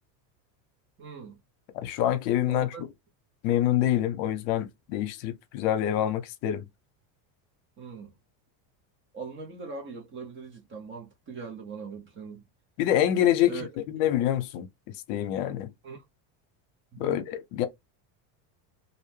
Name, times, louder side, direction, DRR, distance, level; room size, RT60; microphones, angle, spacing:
voice 1, 1.0-1.4 2.5-2.8 7.8-8.2 9.1-12.4 13.4-13.7 14.0-14.1 15.8-16.0 17.0-17.2, right 4 dB, 25° right, 0.5 m, -41 dB
voice 2, 1.8-2.7 3.4-6.7 12.8-14.7 15.1-15.7 17.0-17.7, left 12 dB, 70° left, 0.7 m, -26 dB
2.6 x 2.1 x 3.1 m
cardioid pair, 155°, 50 cm